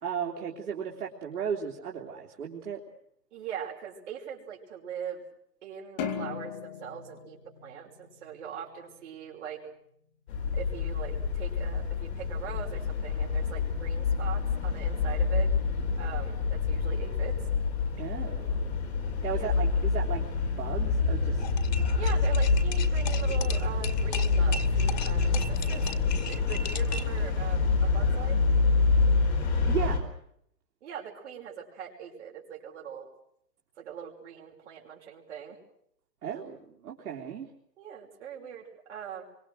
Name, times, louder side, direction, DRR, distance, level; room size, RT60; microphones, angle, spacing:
voice 1, 0.0-2.8 18.0-18.8 19.2-20.3 20.6-21.4 29.7-30.1 36.2-37.5, right 7 dB, 65° right, -2 dB, 3.4 m, -35 dB
voice 2, 3.3-5.3 5.6-9.7 10.5-15.5 16.0-17.4 19.3-19.5 21.9-24.6 25.0-25.9 26.1-28.5 30.8-33.1 33.8-35.6 37.8-39.2, right 8 dB, 45° right, 0 dB, 5.9 m, -41 dB
sound 1, 6.0-8.5, left 7 dB, 25° left, 2.4 m, -37 dB
sound 2, 10.3-30.0, left 4 dB, 40° left, 4.6 m, -27 dB
sound 3, 21.4-27.2, left 5 dB, 85° left, 2.6 m, -38 dB
27.0 x 25.0 x 6.4 m, 0.71 s
hypercardioid pair, 170°, 48 cm